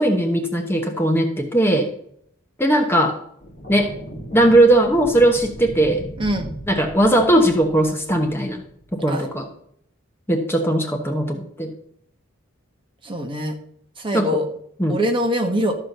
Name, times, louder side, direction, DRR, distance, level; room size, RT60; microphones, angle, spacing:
voice 1, 0.0-1.9 2.6-3.2 3.7-3.9 4.3-6.0 6.7-8.6 8.9-9.5 10.3-11.7 14.1-14.3 14.8-15.0, right 1 dB, 10° left, 3 dB, 1.0 m, -18 dB
sound 1, 3.4-9.0, right 1 dB, 40° left, 2.4 m, -37 dB
voice 2, 6.2-6.5 9.1-9.3 13.0-13.6 14.0-14.5 14.9-15.8, equal, 25° right, 4 dB, 1.2 m, -23 dB
13.0 x 4.4 x 6.6 m, 0.68 s
head